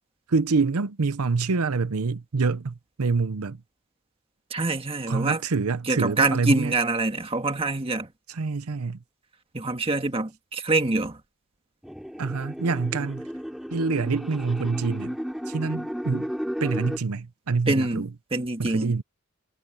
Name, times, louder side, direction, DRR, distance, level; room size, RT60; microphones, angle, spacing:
voice 1, 0.3-3.6 5.1-6.7 8.3-9.0 12.2-13.3 13.7-15.2 15.5-16.3 16.6-18.1 18.6-19.0, right 4 dB, 85° right, 0.7 m, -26 dB
voice 2, 4.5-5.4 5.9-8.1 9.5-11.2 17.7-18.1 18.3-19.0, right 2 dB, 25° right, 1.7 m, -25 dB
sound 1, 11.8-17.0, equal, ahead, 3.8 m, -34 dB
head